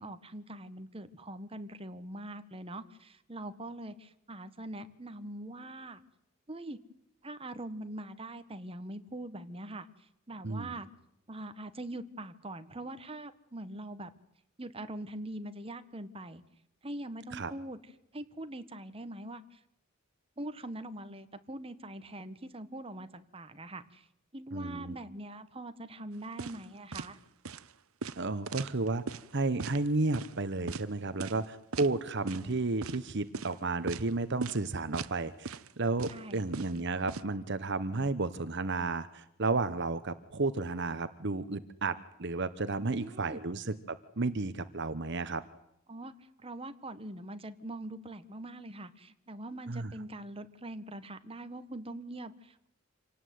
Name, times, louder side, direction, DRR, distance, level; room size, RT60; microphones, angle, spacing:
voice 1, 0.0-6.0 6.5-6.8 7.2-10.9 11.3-14.1 14.6-16.4 16.8-17.8 18.1-19.6 20.4-24.1 24.3-27.2 36.1-36.4 42.8-43.4 45.9-46.1 46.4-52.7, right 1 dB, 25° right, 10 dB, 1.4 m, -43 dB
voice 2, 10.4-10.7 17.3-17.5 24.5-24.9 28.2-29.0 29.3-45.4 49.7-49.9, right 3 dB, 55° right, 12 dB, 1.0 m, -32 dB
sound 1, 26.4-26.6 26.9-27.1 27.5-27.6 28.0-29.3 29.6-29.8 30.1-30.3 30.7-30.8 31.2-31.5 31.7-31.9 32.3-32.5 32.8-33.0 33.3-33.5 33.9-34.1 34.4-34.6 34.9-35.2 35.5-35.7 36.0-37.2, right 4 dB, 80° right, 0.9 m, -38 dB
27.0 x 18.5 x 9.4 m, 0.81 s
head